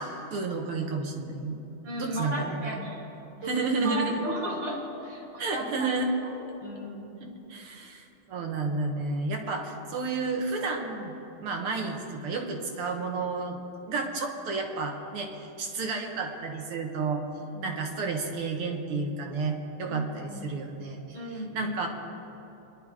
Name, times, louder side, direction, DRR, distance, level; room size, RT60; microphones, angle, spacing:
voice 1, 0.0-1.6 2.0-2.8 3.4-4.2 5.4-6.1 7.2-11.1 11.4-13.6 13.9-17.2 17.6-21.0 21.5-21.9, right 3 dB, 85° right, 2 dB, 2.4 m, -31 dB
voice 2, 1.8-3.0 3.4-3.5 3.8-5.9 6.2-7.4 17.5-17.8 19.8-20.6 21.1-21.7, right 1 dB, 70° right, -3 dB, 4.2 m, -36 dB
25.5 x 11.5 x 4.9 m, 2.9 s
omnidirectional pair, 2.4 m